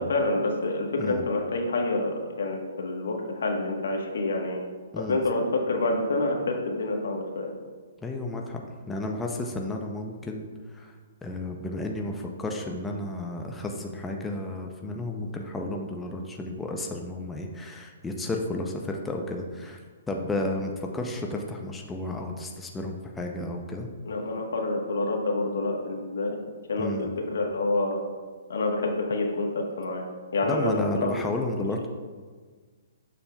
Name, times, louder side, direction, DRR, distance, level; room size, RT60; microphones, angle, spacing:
voice 1, 0.0-4.6 5.0-7.5 24.0-26.4 26.7-28.0 28.5-30.1 30.3-31.1 31.5-31.6, left 2 dB, 80° left, 2 dB, 1.1 m, -27 dB
voice 2, 8.0-8.6 8.9-10.9 11.2-19.8 20.1-23.9 26.8-27.1 30.4-31.9, left 2 dB, 5° left, 1 dB, 0.4 m, -32 dB
6.9 x 6.8 x 2.2 m, 1.5 s
hypercardioid pair, 160°, 0 cm